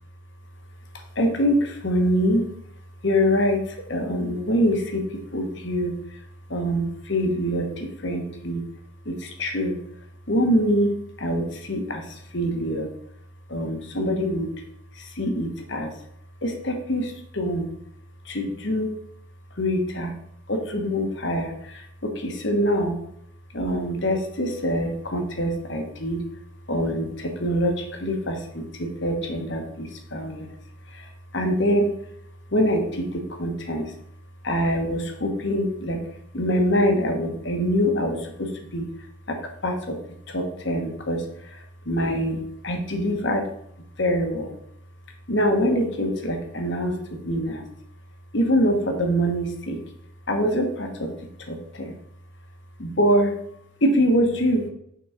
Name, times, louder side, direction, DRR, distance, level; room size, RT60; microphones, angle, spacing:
voice 1, 1.2-2.5 3.0-6.0 6.5-8.6 9.0-9.8 10.3-12.9 13.5-14.5 15.0-15.9 16.4-17.7 18.3-18.9 19.6-20.1 20.5-23.0 23.5-26.2 26.7-30.5 30.9-31.9 32.5-33.9 34.4-36.0 36.3-38.9 39.3-40.0 40.3-43.5 44.0-44.5 45.3-47.6 48.3-49.8 50.3-51.2 51.5-51.9 52.8-53.4 53.8-54.7, equal, 60° left, 4 dB, 1.2 m, -24 dB
6.0 x 3.9 x 4.9 m, 0.71 s
head